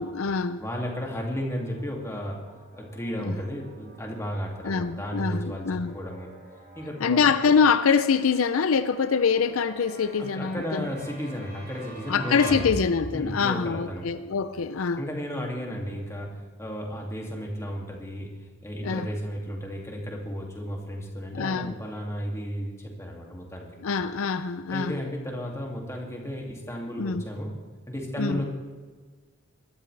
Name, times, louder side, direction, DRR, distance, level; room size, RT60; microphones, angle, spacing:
voice 1, 0.0-0.6 3.2-3.4 4.6-6.0 7.0-10.9 12.1-15.0 18.8-19.1 21.3-21.8 23.8-25.0 27.0-27.2 28.2-28.4, left 5 dB, 75° left, 0.5 m, -24 dB
voice 2, 0.6-2.4 2.7-6.3 6.8-7.2 10.2-12.7 13.1-14.0 15.0-18.3 18.6-23.7 24.7-27.5 27.9-28.4, equal, 15° left, 2.4 m, -34 dB
sound 1, 0.7-13.3, right 1 dB, 40° right, 4.8 m, -43 dB
23.5 x 12.5 x 3.4 m
head